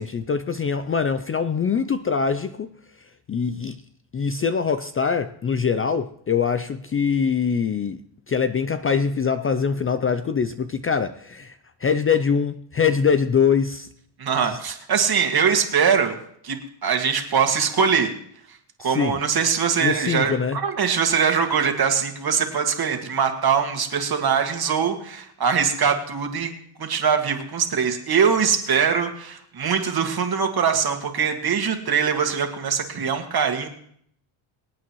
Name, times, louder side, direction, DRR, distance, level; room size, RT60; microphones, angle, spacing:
voice 1, 0.0-2.7 3.3-3.8 4.1-8.0 8.3-11.6 11.8-13.9 18.8-19.2 19.8-20.6, left 6 dB, 30° left, 11 dB, 0.4 m, -23 dB
voice 2, 14.2-16.2 16.4-18.1 18.8-26.5 26.8-33.7, right 6 dB, 50° right, 5 dB, 2.0 m, -22 dB
25.0 x 8.7 x 3.1 m, 0.65 s
cardioid pair, 105°, 49 cm